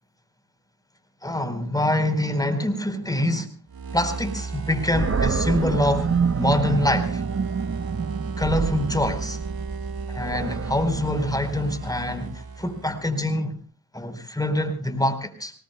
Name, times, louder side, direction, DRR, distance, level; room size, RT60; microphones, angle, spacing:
voice 1, 1.2-3.5 3.9-6.1 6.4-7.2 8.4-9.4 10.1-13.6 13.9-15.5, left 1 dB, 10° left, 4.4 m, -25 dB
sound 1, 3.7-13.2, right 4 dB, 60° right, 1.9 m, -34 dB
Animal, 4.9-12.0, right 5 dB, 35° right, 1.2 m, -28 dB
25.5 x 19.5 x 2.3 m
supercardioid pair, 50°, 40 cm